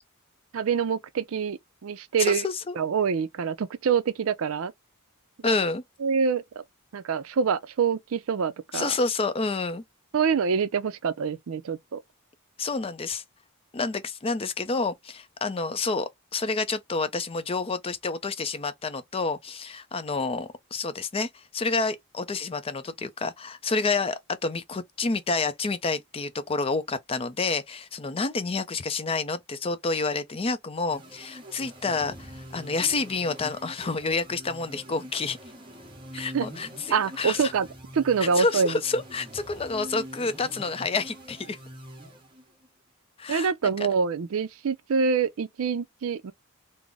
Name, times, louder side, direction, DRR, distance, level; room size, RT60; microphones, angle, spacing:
voice 1, 0.5-2.4 2.8-4.7 5.4-5.5 6.0-6.6 6.9-8.9 10.1-12.0 36.3-36.5 36.9-37.7 37.9-38.8 43.3-46.3, right 6 dB, 65° right, 0.4 m, -26 dB
voice 2, 2.2-2.8 5.4-5.8 8.7-9.8 12.6-13.2 13.7-35.4 36.1-37.5 38.2-41.6 43.2-43.5, left 4 dB, 25° left, 0.4 m, -29 dB
sound 1, 30.9-42.7, equal, 20° right, 1.1 m, -44 dB
3.7 x 2.0 x 3.4 m
head